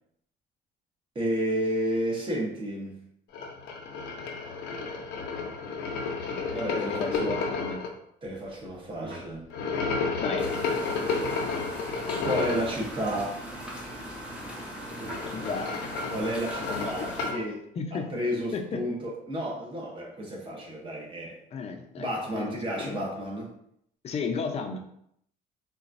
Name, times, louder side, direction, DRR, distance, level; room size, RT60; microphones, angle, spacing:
voice 1, 1.1-3.0 6.5-7.3 8.2-9.5 12.2-13.4 16.1-17.6 18.1-21.4 22.0-23.5, equal, 30° right, -2 dB, 1.0 m, -31 dB
sound 1, 3.3-7.9 9.5-12.7 14.8-17.4, left 4 dB, 80° left, 0.6 m, -31 dB
voice 2, 6.8-7.8 10.2-10.5 15.3-15.8 16.7-17.4 17.8-18.0 18.5-18.8 21.5-22.1 22.3-23.0 24.0-24.8, left 5 dB, 40° left, 4 dB, 0.5 m, -34 dB
sound 2, 8.2-12.5 12.7-15.6, right 1 dB, 55° right, 1.2 m, -46 dB
sound 3, 10.4-17.3, equal, 5° right, 0.7 m, -40 dB
3.9 x 2.2 x 2.5 m, 0.72 s
cardioid pair, 110°, 17 cm